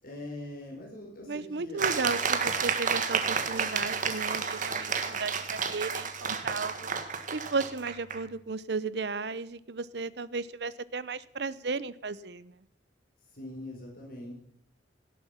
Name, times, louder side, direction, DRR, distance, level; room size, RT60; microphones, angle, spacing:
voice 1, 0.0-1.8 13.3-14.4, left 1 dB, 55° left, 0 dB, 4.6 m, -42 dB
voice 2, 1.3-6.9 7.3-12.6, right 4 dB, 65° right, 17 dB, 0.8 m, -34 dB
sound 1, 1.8-8.2, right 6 dB, 45° right, 1.7 m, -31 dB
17.5 x 8.4 x 5.8 m, 0.74 s
head